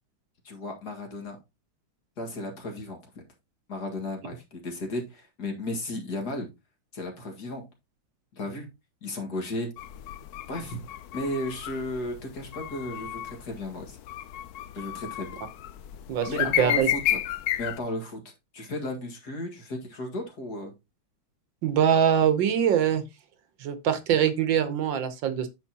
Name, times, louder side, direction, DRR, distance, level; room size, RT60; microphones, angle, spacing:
voice 1, 0.4-1.4 2.2-3.2 3.7-6.5 6.9-7.7 8.3-8.7 9.0-9.7 10.5-10.8 11.1-14.0 14.7-15.4 16.3-17.2 17.6-20.7, left 1 dB, 55° left, 2.3 m, -34 dB
sound 1, 9.8-17.8, left 12 dB, 70° left, 0.9 m, -32 dB
voice 2, 16.6-16.9 21.6-23.0 23.6-25.5, right 9 dB, 70° right, 1.6 m, -23 dB
9.1 x 6.4 x 2.8 m
omnidirectional pair, 2.1 m